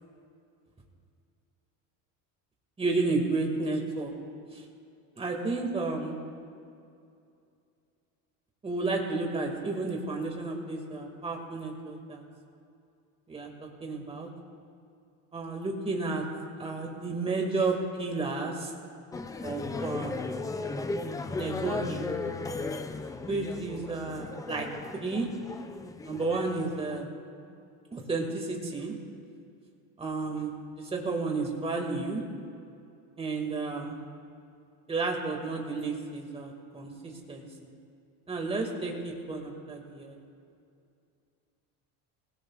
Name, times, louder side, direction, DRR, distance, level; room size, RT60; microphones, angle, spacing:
voice 1, 2.8-4.1 4.5-4.6 5.2-6.2 8.6-12.2 13.3-14.3 15.3-16.2 16.6-18.7 19.4-20.2 21.4-22.1 23.3-24.7 24.9-25.3 26.0-27.0 27.9-28.9 30.0-30.5 30.8-32.2 33.2-34.0 34.9-37.5 38.3-40.2, right 3 dB, 15° right, 1 dB, 2.1 m, -32 dB
sound 1, 19.1-27.0, left 3 dB, 10° left, 0.3 m, -36 dB
26.5 x 17.5 x 2.4 m, 2.5 s
cardioid pair, 145°, 41 cm